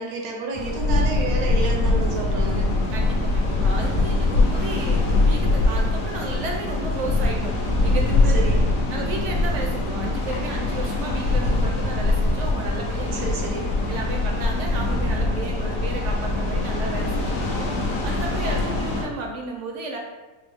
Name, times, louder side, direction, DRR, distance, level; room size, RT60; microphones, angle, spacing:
voice 1, 0.0-2.7 8.3-8.6 13.2-13.8, right 2 dB, 80° right, 0 dB, 1.2 m, -30 dB
sound 1, 0.5-19.0, left 2 dB, 70° left, 1.3 m, -23 dB
voice 2, 2.9-7.5 7.8-8.4 8.9-13.3 13.9-17.7 18.0-20.0, right 3 dB, 65° right, 1 dB, 0.8 m, -33 dB
4.8 x 2.0 x 3.4 m, 1.2 s
omnidirectional pair, 1.5 m